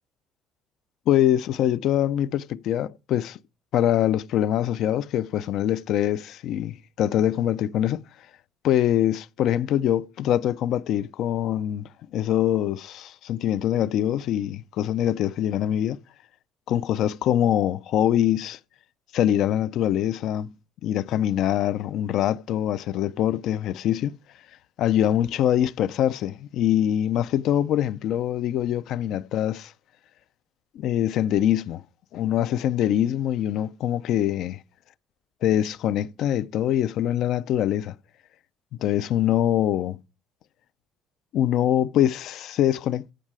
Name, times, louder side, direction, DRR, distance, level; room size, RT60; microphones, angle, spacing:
voice 1, 1.1-3.4 3.7-8.0 8.6-16.0 16.7-18.6 19.1-20.5 20.8-24.2 24.8-29.7 30.7-31.8 32.1-34.6 35.4-37.9 38.8-40.0 41.3-43.1, left 11 dB, 60° left, 0.5 m, -24 dB
16.5 x 6.4 x 4.8 m
cardioid pair, 145°, 0 cm